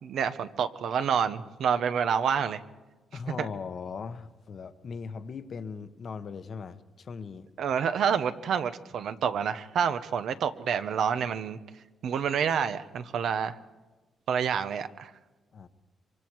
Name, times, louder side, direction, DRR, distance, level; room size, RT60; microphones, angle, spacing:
voice 1, 0.0-2.6 3.4-3.5 7.6-11.6 12.0-13.6 14.3-15.1, right 7 dB, 70° right, 11 dB, 1.0 m, -28 dB
voice 2, 3.1-7.5 15.5-15.7, left 5 dB, 50° left, 11 dB, 1.0 m, -39 dB
25.5 x 24.0 x 4.7 m, 1.2 s
cardioid pair, 130°, 0 cm